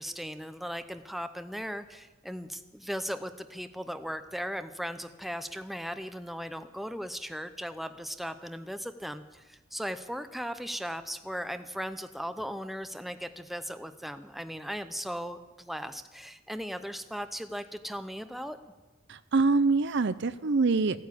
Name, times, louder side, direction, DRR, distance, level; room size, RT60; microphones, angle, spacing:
voice 1, 0.0-18.6, equal, ahead, 9 dB, 0.6 m, -37 dB
voice 2, 19.1-21.1, right 3 dB, 60° right, 14 dB, 0.6 m, -25 dB
15.0 x 9.5 x 8.3 m, 1.2 s
head